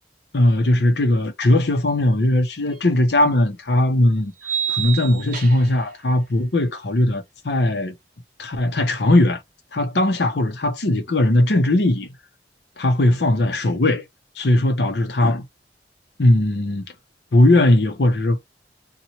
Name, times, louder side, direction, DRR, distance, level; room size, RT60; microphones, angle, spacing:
voice 1, 0.3-4.3 4.7-7.9 8.4-9.4 9.7-12.1 12.8-14.0 14.4-15.4 16.2-16.8 17.3-18.4, left 1 dB, 65° left, 0.7 m, -18 dB
sound 1, 2.7-2.8 4.4-5.8, right 9 dB, 50° right, 0.7 m, -28 dB
2.8 x 2.4 x 2.9 m
head